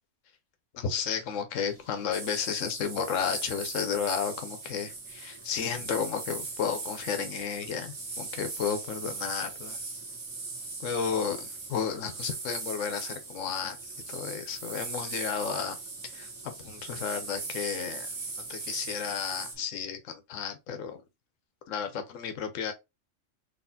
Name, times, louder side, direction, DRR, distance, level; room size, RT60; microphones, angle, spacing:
voice 1, 0.7-9.8 10.8-15.8 16.1-18.1 18.5-21.0 21.7-22.7, left 7 dB, 75° left, 1.2 m, -33 dB
sound 1, 1.6-19.7, right 3 dB, 15° right, 1.1 m, -57 dB
sound 2, 2.1-19.6, right 3 dB, 50° right, 1.4 m, -39 dB
4.1 x 3.2 x 2.7 m
omnidirectional pair, 1.4 m